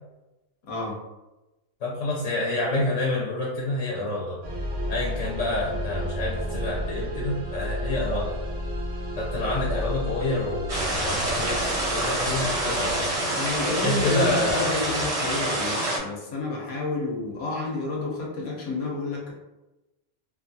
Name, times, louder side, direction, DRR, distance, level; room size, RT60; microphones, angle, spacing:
voice 1, 1.8-4.4 4.9-8.4 9.2-11.6 11.9-13.3 13.8-14.7, left 2 dB, 90° left, -4 dB, 1.0 m, -28 dB
sound 1, 4.4-15.1, equal, 90° right, 1.1 m, -33 dB
Drip, 8.1-8.3 9.7-9.9 11.3-11.5 12.9-13.1 14.5-14.7, right 1 dB, 35° left, 0.3 m, -35 dB
sound 2, 10.7-16.0, right 1 dB, 45° right, 0.4 m, -27 dB
voice 2, 13.3-19.3, left 2 dB, 65° left, -3 dB, 0.9 m, -30 dB
2.7 x 2.2 x 2.6 m, 1.0 s
omnidirectional pair, 1.2 m